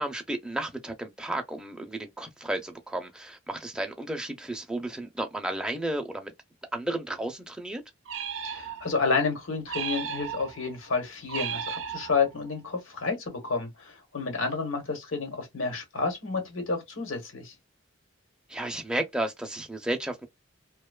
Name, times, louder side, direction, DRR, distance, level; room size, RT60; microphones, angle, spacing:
voice 1, 0.0-6.3 6.7-7.8 18.5-20.3, right 1 dB, 5° right, 0.4 m, -33 dB
sound 1, 8.1-9.1 9.7-10.7 11.3-12.5, right 7 dB, 70° right, 0.5 m, -35 dB
voice 2, 8.4-17.5, left 4 dB, 85° left, 1.1 m, -30 dB
2.5 x 2.2 x 2.2 m
head